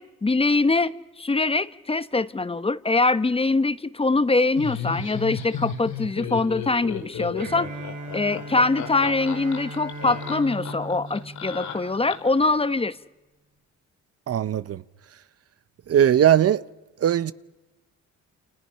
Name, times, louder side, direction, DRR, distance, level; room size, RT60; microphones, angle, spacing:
voice 1, 0.0-7.7 8.1-13.0, left 3 dB, 20° left, 0.9 m, -23 dB
Laughter, 4.6-12.4, left 7 dB, 75° left, 5.1 m, -33 dB
Bowed string instrument, 7.4-12.3, right 1 dB, 80° right, 7.5 m, -38 dB
voice 2, 14.3-14.8 15.9-16.6 17.0-17.3, right 10 dB, 55° right, 0.8 m, -19 dB
29.5 x 28.0 x 5.8 m
cardioid pair, 90°, 30 cm